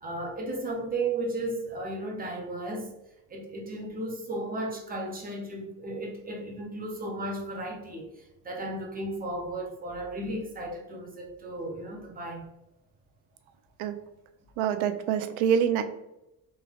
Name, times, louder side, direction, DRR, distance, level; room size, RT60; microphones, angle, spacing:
voice 1, 0.0-2.9 3.3-12.5, right 2 dB, 20° right, 0 dB, 0.4 m, -34 dB
voice 2, 14.6-15.8, right 8 dB, 80° right, 8 dB, 0.6 m, -25 dB
3.4 x 3.2 x 2.3 m, 0.90 s
cardioid pair, 160°, 47 cm